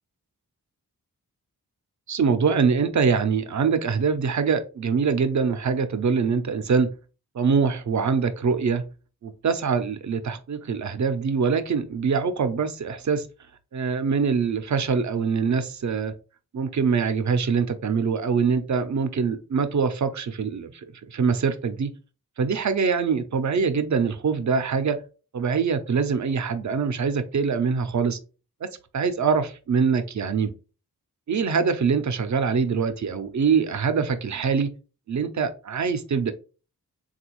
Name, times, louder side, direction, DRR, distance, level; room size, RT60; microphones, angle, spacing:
voice 1, 2.1-6.9 7.4-8.8 9.2-13.3 13.7-16.1 16.5-20.7 21.1-21.9 22.4-25.0 25.3-28.2 28.6-28.7 28.9-30.5 31.3-34.7 35.1-36.3, right 5 dB, 50° right, 10 dB, 0.5 m, -24 dB
3.5 x 2.3 x 3.0 m, 0.35 s
cardioid pair, 50°, 38 cm